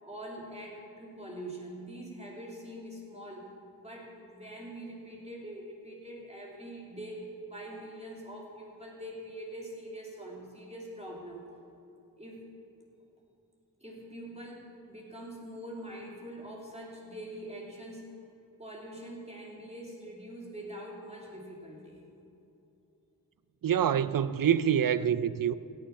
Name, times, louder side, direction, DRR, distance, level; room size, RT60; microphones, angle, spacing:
voice 1, 0.0-3.5 3.8-11.4 12.2-12.5 13.8-18.1 18.6-22.0, right 1 dB, 15° right, 2.8 m, -44 dB
voice 2, 23.6-25.5, right 9 dB, 65° right, 0.5 m, -26 dB
17.0 x 6.9 x 5.8 m
cardioid pair, 45°, 37 cm